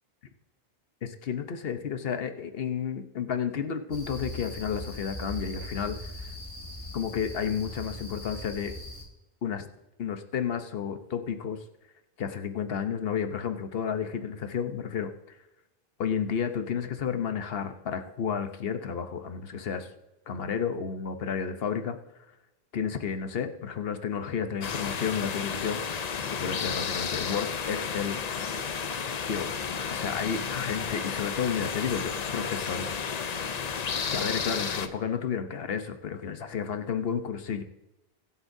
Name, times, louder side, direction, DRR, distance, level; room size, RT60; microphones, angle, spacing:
voice 1, 1.0-6.3 6.9-8.7 9.4-9.7 10.0-11.6 12.2-15.1 16.0-19.9 20.3-22.0 22.7-25.8 26.3-28.2 29.3-29.5 29.9-33.0 34.1-37.6, left 7 dB, 70° left, 8 dB, 1.1 m, -31 dB
sound 1, 3.9-9.0, equal, 30° left, 1.8 m, -40 dB
sound 2, 24.6-34.9, left 6 dB, 45° left, 0.7 m, -32 dB
22.0 x 8.2 x 2.7 m, 0.95 s
omnidirectional pair, 1.0 m